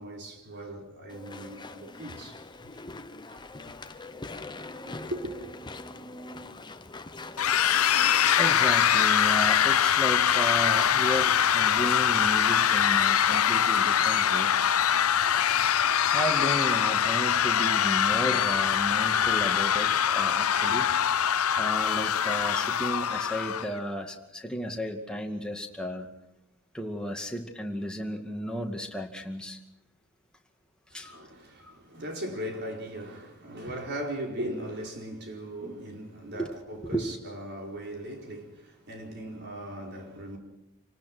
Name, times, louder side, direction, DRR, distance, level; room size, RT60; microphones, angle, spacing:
voice 1, 0.0-2.4 2.7-2.8 3.3-4.1 4.6-5.3 30.9-40.4, right 1 dB, 50° right, 4.8 m, -39 dB
Walk footsteps / Chatter / Squeak, 1.1-8.8, left 2 dB, 20° left, 1.0 m, -43 dB
sound 1, 7.4-23.7, left 9 dB, 75° left, 0.7 m, -23 dB
voice 2, 8.1-14.5 16.1-20.9 21.6-26.1 26.7-29.6 30.9-31.2 31.6-31.7 36.3-36.5 36.8-37.1, equal, 5° left, 2.3 m, -34 dB
27.5 x 18.5 x 6.3 m
head